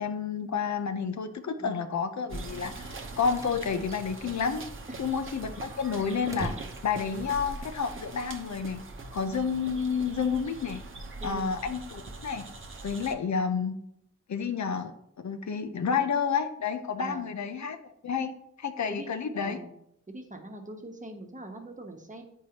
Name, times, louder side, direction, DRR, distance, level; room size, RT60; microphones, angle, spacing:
voice 1, 0.0-4.6 5.0-6.5 6.8-8.8 9.1-10.8 11.2-12.4 12.8-13.8 14.3-18.3 18.6-19.6, left 6 dB, 75° left, 7 dB, 0.6 m, -30 dB
sound 1, 2.3-13.1, right 2 dB, 45° right, 0.8 m, -42 dB
sound 2, 3.4-3.6 4.0-4.1 4.3-4.4 4.8-7.8, right 1 dB, 10° right, 0.5 m, -42 dB
voice 2, 11.2-11.5 17.0-17.3 18.9-19.1 19.3-19.7 20.1-22.2, right 1 dB, 25° right, 3 dB, 1.0 m, -42 dB
8.8 x 4.6 x 2.9 m, 0.75 s
wide cardioid pair, 75°, 29 cm